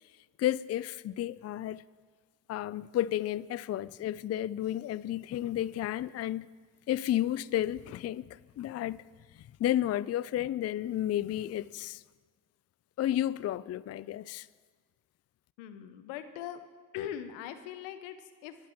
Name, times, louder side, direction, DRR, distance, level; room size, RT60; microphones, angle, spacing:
voice 1, 0.4-1.8 2.5-6.5 6.9-9.0 9.3-12.0 13.0-14.5, left 12 dB, 40° left, 0.4 m, -32 dB
voice 2, 15.6-16.6 16.9-18.2 18.4-18.6, left 10 dB, 85° left, 0.9 m, -40 dB
24.5 x 8.2 x 4.4 m
hypercardioid pair, 55°, 42 cm